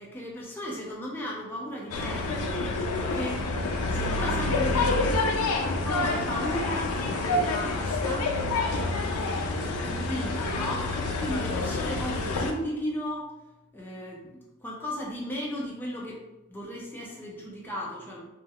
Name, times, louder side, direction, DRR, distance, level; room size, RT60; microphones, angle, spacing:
voice 1, 0.0-3.5 3.9-13.3 13.7-16.2 16.5-18.3, equal, 10° left, -4 dB, 0.3 m, -36 dB
sound 1, 1.9-12.5, left 2 dB, 80° left, 0.4 m, -28 dB
2.2 x 2.1 x 3.4 m, 0.97 s
head